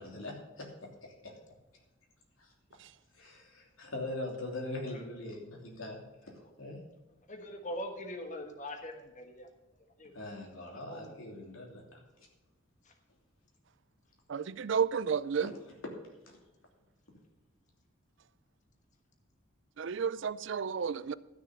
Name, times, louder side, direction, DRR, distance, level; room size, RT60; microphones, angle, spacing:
voice 1, 0.0-1.3 2.4-2.5 3.1-6.3 6.6-6.8 10.1-12.0, left 2 dB, 80° left, 3.1 m, -42 dB
voice 2, 7.3-9.5 10.0-10.1 10.9-11.1 12.8-12.9, left 1 dB, 40° left, 1.3 m, -42 dB
voice 3, 14.3-15.5 19.8-21.1, right 6 dB, 60° right, 0.4 m, -31 dB
13.0 x 6.5 x 6.6 m
head